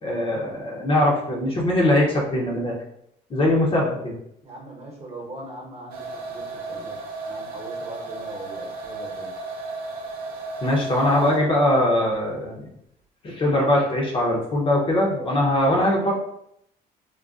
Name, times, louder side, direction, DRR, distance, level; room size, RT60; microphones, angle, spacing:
voice 1, 0.0-2.8 3.3-4.1 10.6-12.7 13.2-16.1, left 1 dB, 30° left, -2 dB, 0.7 m, -21 dB
voice 2, 4.4-7.0 7.3-9.3, right 2 dB, 40° right, -1 dB, 1.0 m, -40 dB
sound 1, 5.9-11.6, right 3 dB, 60° right, 0.6 m, -34 dB
3.8 x 2.1 x 2.4 m, 0.75 s
cardioid pair, 110°, 17 cm